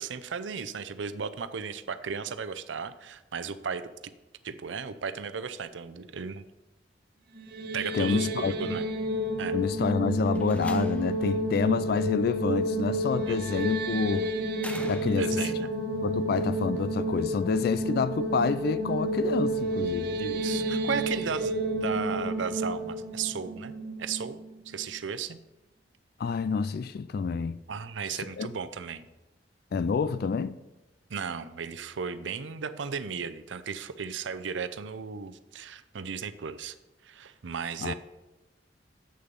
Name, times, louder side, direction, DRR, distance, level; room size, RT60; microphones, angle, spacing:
voice 1, 0.0-3.8 4.4-6.4 7.7-8.8 9.4-9.6 13.3-13.4 15.1-15.7 20.2-21.5 21.8-24.4 24.7-25.4 27.7-29.1 31.1-36.7 37.0-37.9, right 6 dB, 90° right, 0.6 m, -35 dB
sound 1, 7.4-24.5, right 1 dB, 55° right, 1.1 m, -30 dB
voice 2, 7.9-8.5 9.5-14.3 14.9-15.3 16.0-20.2 26.2-27.6 28.4-28.5 29.7-30.6 37.8-37.9, left 5 dB, 55° left, 0.3 m, -28 dB
Slam, 10.3-11.3 12.8-13.2 14.6-15.6, left 1 dB, 5° left, 0.6 m, -43 dB
7.8 x 6.7 x 5.3 m
head